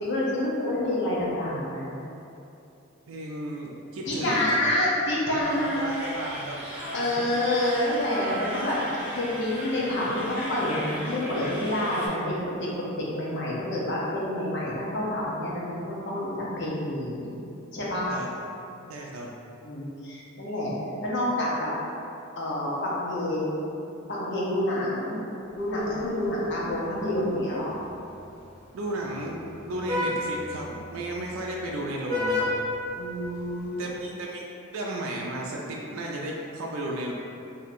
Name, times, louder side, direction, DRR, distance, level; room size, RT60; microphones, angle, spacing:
voice 1, 0.0-1.9 4.1-6.0 6.9-8.8 9.1-17.3 17.7-18.1 19.6-20.7 21.0-21.7 22.4-23.6 24.1-25.2 25.6-27.8 33.0-33.9, left 1 dB, 60° left, -6 dB, 0.8 m, -28 dB
voice 2, 3.1-4.6 5.6-6.6 7.2-7.4 18.1-18.3 18.9-19.3 28.7-29.4 29.7-32.5 33.7-34.4 34.7-37.1, right 1 dB, 80° right, -2 dB, 0.4 m, -34 dB
sound 1, 5.4-12.1, equal, 10° right, 0.9 m, -37 dB
Vehicle horn car horn honking, 25.6-33.7, left 1 dB, 35° right, 1.3 m, -34 dB
4.3 x 2.8 x 2.5 m, 2.8 s
head